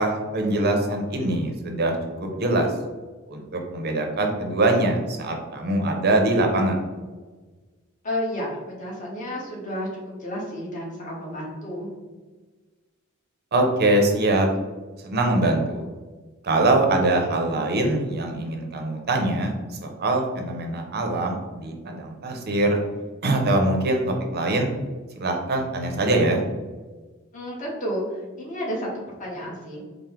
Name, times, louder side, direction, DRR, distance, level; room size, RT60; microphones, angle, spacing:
voice 1, 0.0-2.0 2.2-2.7 3.3-3.4 3.7-6.8 13.5-14.5 15.0-15.8 16.4-19.5 19.8-22.8 23.2-24.0 24.3-24.7 25.2-26.4, right 2 dB, 50° right, 2 dB, 0.6 m, -23 dB
voice 2, 8.0-11.9 27.3-28.9 29.2-29.8, equal, 35° left, -4 dB, 1.0 m, -31 dB
4.3 x 2.0 x 3.6 m, 1.3 s
head